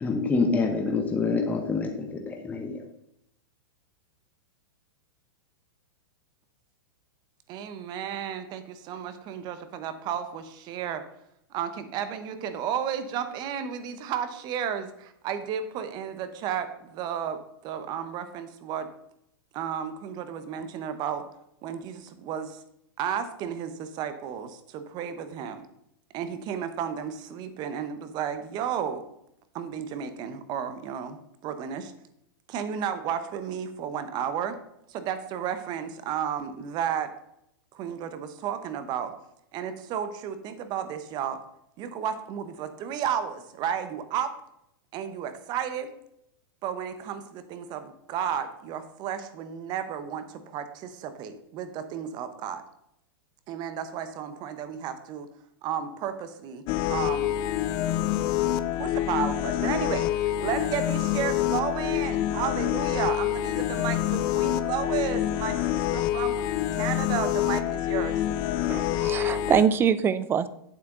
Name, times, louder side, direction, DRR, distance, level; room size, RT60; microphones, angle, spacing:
voice 1, 0.0-2.8, left 4 dB, 10° left, 4 dB, 0.9 m, -26 dB
voice 2, 7.5-11.0 11.5-18.9 19.5-21.2 21.6-22.6 23.0-25.6 26.1-29.0 29.5-31.9 32.5-34.5 34.9-37.1 37.7-39.1 39.5-41.4 41.8-44.3 44.9-45.9 46.6-52.6 53.5-55.3 55.6-56.6 56.9-57.3 58.7-66.3 66.7-68.2, right 8 dB, 35° right, 10 dB, 0.9 m, -33 dB
sound 1, 56.7-69.6, left 12 dB, 35° left, 0.5 m, -27 dB
voice 3, 68.7-70.5, right 8 dB, 20° right, 15 dB, 0.5 m, -24 dB
8.6 x 7.8 x 3.8 m, 0.78 s
hypercardioid pair, 135°, 12 cm